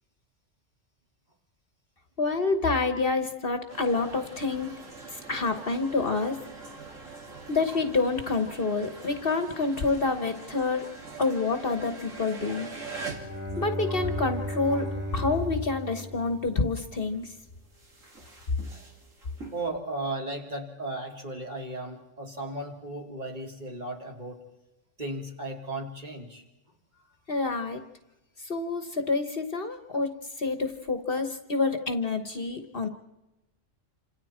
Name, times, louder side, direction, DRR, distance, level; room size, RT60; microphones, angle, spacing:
voice 1, 2.2-4.7 5.1-6.4 7.5-10.9 11.2-12.7 13.6-17.3 27.3-27.8 28.4-32.9, left 3 dB, 50° left, 8 dB, 1.4 m, -28 dB
sound 1, 3.7-15.9 16.2-19.6, right 3 dB, 80° right, 3.1 m, -44 dB
Bowed string instrument, 12.8-16.9, equal, 10° right, 2.2 m, -35 dB
voice 2, 19.5-24.4 25.0-26.4, right 2 dB, 35° right, 0 dB, 3.0 m, -35 dB
27.5 x 27.0 x 4.4 m, 0.97 s
omnidirectional pair, 1.3 m